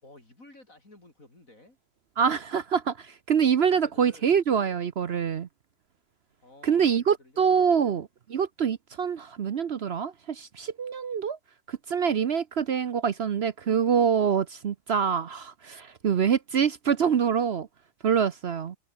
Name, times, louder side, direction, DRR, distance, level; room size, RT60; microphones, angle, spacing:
voice 1, 0.0-1.8 3.7-4.4 6.4-8.0, left 2 dB, 40° left, 6.2 m, -53 dB
voice 2, 2.2-5.5 6.6-11.4 11.7-17.7 18.0-18.8, right 7 dB, 65° right, 0.6 m, -25 dB
omnidirectional pair, 2.1 m